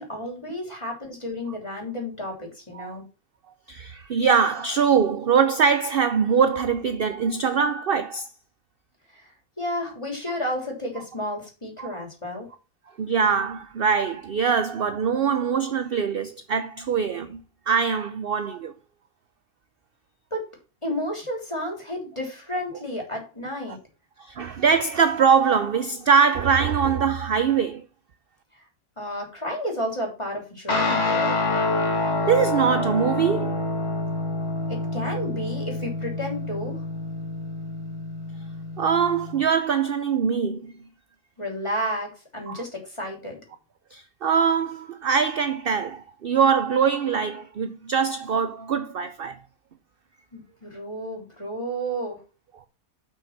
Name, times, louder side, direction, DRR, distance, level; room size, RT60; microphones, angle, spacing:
voice 1, 0.0-3.0 9.1-9.3 9.6-12.5 20.3-20.5 20.8-23.8 29.0-31.4 34.7-36.8 41.4-43.4 50.3-52.2, equal, 20° left, 3.3 m, -32 dB
voice 2, 3.7-8.3 11.8-11.9 13.0-17.4 17.7-18.7 24.2-27.8 32.3-33.6 38.8-40.7 42.5-42.6 43.9-49.3, right 6 dB, 55° right, 0.6 m, -22 dB
Guitar, 30.7-39.4, left 2 dB, 40° left, 2.2 m, -27 dB
6.8 x 6.0 x 5.9 m
omnidirectional pair, 1.7 m